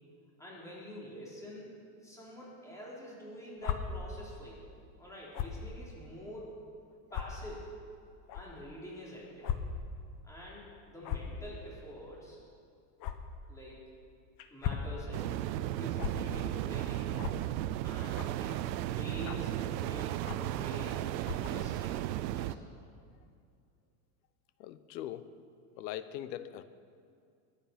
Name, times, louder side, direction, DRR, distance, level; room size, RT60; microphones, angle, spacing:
voice 1, 0.4-1.7 2.0-4.7 5.0-6.5 7.1-7.6 8.3-9.5 10.2-12.4 13.5-13.9 14.5-17.2 17.8-22.1 22.3-22.7, equal, 5° left, -6 dB, 3.5 m, -46 dB
sound 1, 3.6-3.8 5.3-5.6 6.3-6.4 7.1-7.2 8.3-8.4 9.4-9.6 9.9-10.0 11.0-11.3 13.0-13.1 14.4-14.9 16.0-16.1 17.2-17.4 18.1-18.4 19.2-19.5 20.2-20.5 21.2-21.5, left 11 dB, 40° left, 1.0 m, -35 dB
sound 2, 15.1-22.5, right 14 dB, 90° right, 0.7 m, -35 dB
voice 2, 24.6-25.3 25.8-26.6, left 12 dB, 85° left, 13 dB, 1.0 m, -41 dB
21.0 x 8.9 x 5.9 m, 2.3 s
supercardioid pair, 150°, 50 cm